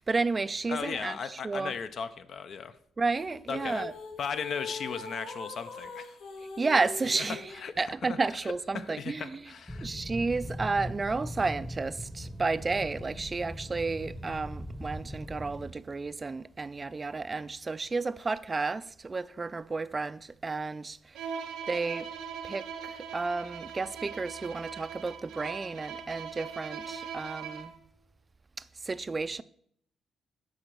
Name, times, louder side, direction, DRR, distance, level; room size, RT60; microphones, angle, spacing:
voice 1, 0.0-1.7 3.0-3.9 6.6-7.5 7.8-9.4 9.8-21.3 21.7-22.1 22.4-27.7 28.8-29.4, right 3 dB, 30° right, 0.4 m, -32 dB
voice 2, 0.7-2.8 3.5-3.9 4.2-6.2 7.2-7.3 7.5-8.2 8.7-9.9, left 6 dB, 60° left, 0.5 m, -37 dB
sound 1, 3.1-7.7, left 4 dB, 80° left, 1.9 m, -42 dB
sound 2, 9.7-15.7, equal, 10° left, 0.9 m, -40 dB
Bowed string instrument, 21.1-27.8, right 7 dB, 90° right, 0.9 m, -41 dB
9.7 x 3.9 x 6.0 m
cardioid pair, 90°, 0 cm